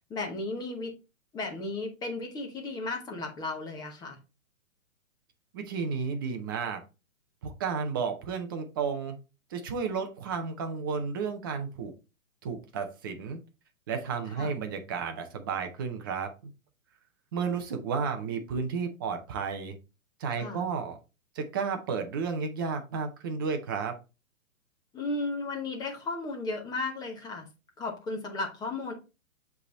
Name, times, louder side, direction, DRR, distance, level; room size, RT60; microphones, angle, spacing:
voice 1, 0.1-0.9 1.3-4.2 14.4-14.5 20.4-20.7 24.9-27.5 27.8-28.9, left 2 dB, 10° left, 2 dB, 1.0 m, -34 dB
voice 2, 5.5-6.8 7.4-9.2 9.5-11.9 12.4-13.4 13.9-16.5 17.3-19.8 20.2-21.0 21.4-24.0, right 5 dB, 15° right, 6 dB, 0.5 m, -32 dB
7.5 x 3.4 x 4.0 m, 0.29 s
hypercardioid pair, 150°, 42 cm